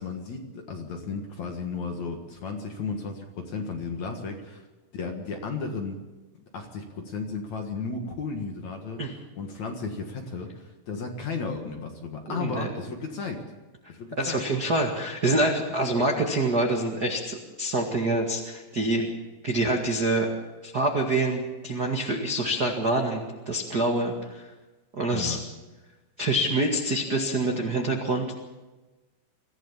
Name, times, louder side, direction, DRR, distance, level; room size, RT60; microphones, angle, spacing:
voice 1, 0.0-4.7 4.9-6.0 6.5-13.4 13.9-14.5 25.1-25.4, left 4 dB, 55° left, 3 dB, 2.4 m, -34 dB
voice 2, 12.3-12.7 14.2-19.1 19.4-20.3 20.6-24.5 24.9-25.4 26.2-28.3, right 2 dB, 45° right, 2 dB, 1.3 m, -26 dB
24.0 x 15.5 x 7.2 m, 1.2 s
omnidirectional pair, 4.8 m